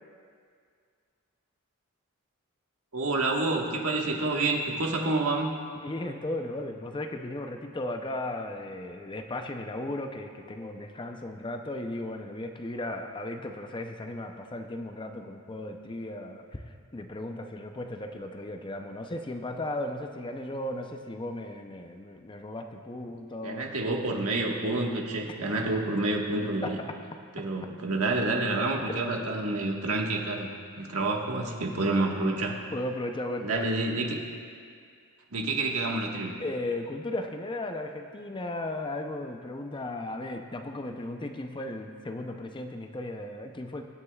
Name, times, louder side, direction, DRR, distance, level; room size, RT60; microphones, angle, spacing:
voice 1, 2.9-5.5 23.4-26.8 27.3-30.5 30.7-32.6 33.4-34.2 35.3-36.4, right 2 dB, 80° right, 0 dB, 1.5 m, -28 dB
voice 2, 5.8-23.7 26.6-26.9 27.3-27.4 32.7-33.7 36.4-43.8, left 1 dB, 20° left, 5 dB, 0.6 m, -36 dB
23.5 x 9.8 x 2.4 m, 2.1 s
head